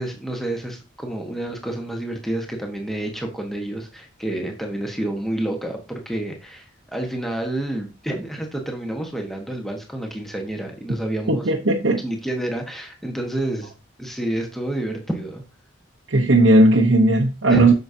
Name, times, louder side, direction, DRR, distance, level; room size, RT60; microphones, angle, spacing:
voice 1, 0.0-11.5 11.8-13.7 14.0-15.4 17.5-17.7, right 1 dB, ahead, 1.4 m, -29 dB
voice 2, 11.3-12.0 16.1-17.7, right 2 dB, 75° right, 1.0 m, -16 dB
8.8 x 6.5 x 2.8 m
head